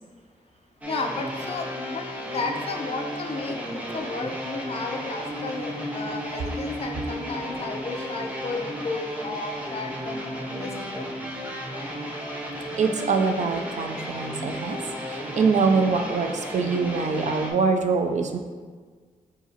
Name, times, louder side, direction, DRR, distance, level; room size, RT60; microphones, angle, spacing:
sound 1, 0.8-17.5, equal, 10° right, 0.6 m, -34 dB
voice 1, 0.9-11.1, left 3 dB, 45° left, 4 dB, 0.5 m, -33 dB
voice 2, 12.8-14.8 15.1-18.4, right 4 dB, 60° right, 5 dB, 0.4 m, -24 dB
4.9 x 3.9 x 2.7 m, 1.5 s
wide cardioid pair, 175°, 14 cm